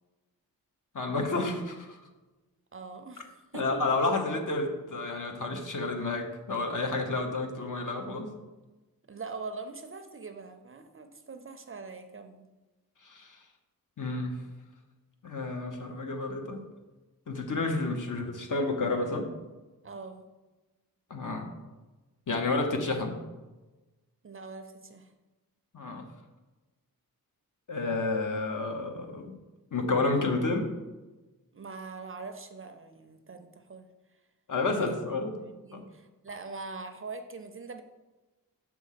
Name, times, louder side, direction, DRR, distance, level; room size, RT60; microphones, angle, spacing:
voice 1, 0.9-2.0 3.5-8.3 13.0-13.4 14.0-14.4 15.2-16.7 17.3-19.3 21.1-21.5 22.3-23.1 25.7-26.0 27.7-29.3 29.7-30.7 34.5-35.3 35.7-35.8, left 3 dB, 60° left, 3 dB, 0.9 m, -30 dB
voice 2, 2.7-3.9 9.1-12.5 19.8-20.3 24.2-25.1 31.5-33.9 34.9-35.0 35.3-37.8, right 4 dB, 35° right, 7 dB, 0.4 m, -43 dB
6.1 x 3.6 x 5.7 m, 1.2 s
wide cardioid pair, 135°, 36 cm